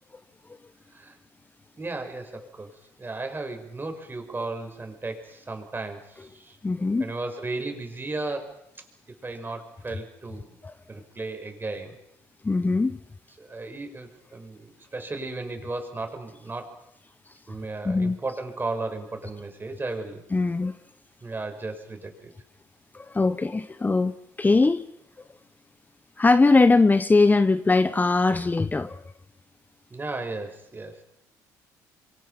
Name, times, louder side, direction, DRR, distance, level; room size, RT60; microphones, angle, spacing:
voice 1, 1.8-2.7 3.0-6.6 7.0-8.6 9.2-10.6 10.9-12.0 13.4-16.8 17.5-20.2 21.2-22.3 29.9-31.0, right 3 dB, 25° right, 5 dB, 5.9 m, -35 dB
voice 2, 6.6-7.0 10.6-10.7 12.4-13.0 17.8-18.2 20.3-20.7 22.9-24.8 26.2-29.0, left 3 dB, 20° left, 13 dB, 1.0 m, -21 dB
27.5 x 23.5 x 5.8 m, 0.76 s
hypercardioid pair, 65°, 9 cm